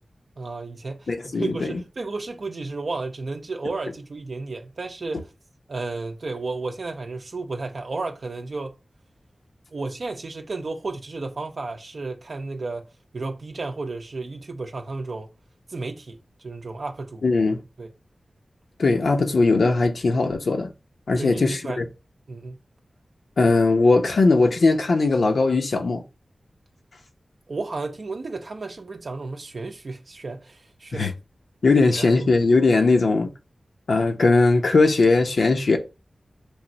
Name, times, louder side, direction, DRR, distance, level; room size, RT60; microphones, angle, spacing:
voice 1, 0.4-5.3 5.7-8.7 9.7-12.9 13.1-15.3 15.7-17.2 17.8-17.9 21.2-21.8 22.3-22.6 27.5-31.1 31.7-32.2, right 3 dB, 65° right, 0.5 m, -33 dB
voice 2, 1.1-1.8 17.2-17.6 18.8-20.7 21.1-21.8 23.4-26.0 30.9-31.1 31.6-33.3 33.9-35.8, left 3 dB, 80° left, 0.7 m, -19 dB
3.5 x 2.6 x 4.0 m
wide cardioid pair, 60°, 0 cm